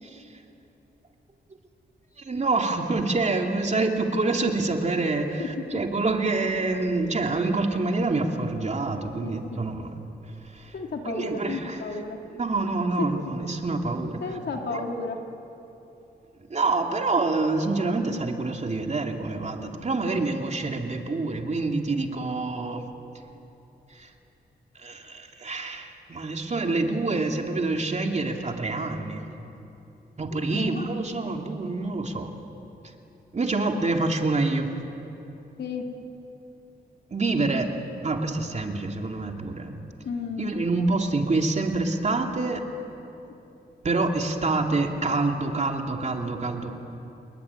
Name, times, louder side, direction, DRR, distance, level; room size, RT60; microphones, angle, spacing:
voice 1, 2.2-10.0 10.4-10.7 11.0-12.0 12.4-14.4 14.7-14.8 16.5-22.9 23.9-24.1 24.7-29.3 30.2-32.3 33.3-34.7 37.1-37.8 38.0-39.8 40.4-42.6 43.8-46.7, right 3 dB, 40° right, 3 dB, 2.8 m, -27 dB
voice 2, 5.4-5.8 9.2-9.3 10.7-12.2 13.0-13.1 14.2-15.2 30.5-30.8 35.6-35.9 40.0-40.5, left 4 dB, 70° left, 2 dB, 3.0 m, -32 dB
29.0 x 20.5 x 9.8 m, 2.9 s
cardioid pair, 90°, 18 cm